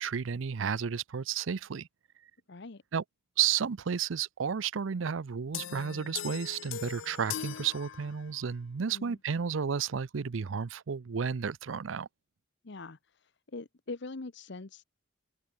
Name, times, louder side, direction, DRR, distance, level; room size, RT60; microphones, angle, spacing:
voice 1, 0.0-1.9 2.9-3.0 3.4-12.1, right 7 dB, 85° right, 0.5 m, -32 dB
voice 2, 2.5-2.8 8.9-9.2 12.6-13.0 13.5-14.8, left 3 dB, 65° left, 1.0 m, -42 dB
sound 1, 5.5-8.5, left 10 dB, 80° left, 0.6 m, -40 dB
open air
head